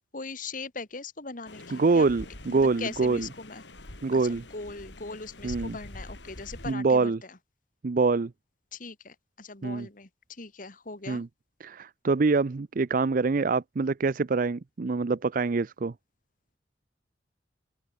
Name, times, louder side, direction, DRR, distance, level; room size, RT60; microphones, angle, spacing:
voice 1, 0.1-2.1 2.5-3.6 4.1-7.4 8.7-11.2, left 3 dB, 50° left, 2.4 m, -40 dB
sound 1, 1.5-6.7, left 1 dB, 90° left, 4.1 m, -45 dB
voice 2, 1.7-3.3 4.0-4.4 5.4-5.8 6.7-7.2 7.8-8.3 9.6-9.9 11.1-11.3 11.6-15.9, right 4 dB, 50° right, 0.5 m, -25 dB
open air
head